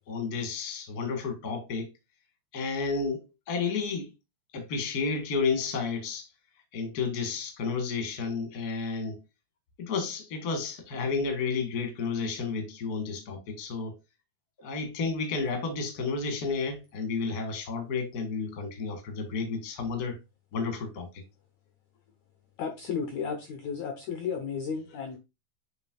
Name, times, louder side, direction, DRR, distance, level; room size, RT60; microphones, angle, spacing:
voice 1, 0.1-1.9 2.5-4.1 4.5-6.3 6.7-9.2 9.8-13.9 14.6-20.2 20.5-21.1, left 4 dB, 45° left, 1.2 m, -31 dB
voice 2, 22.6-25.2, left 6 dB, 85° left, 1.6 m, -33 dB
8.8 x 4.7 x 2.4 m
omnidirectional pair, 4.7 m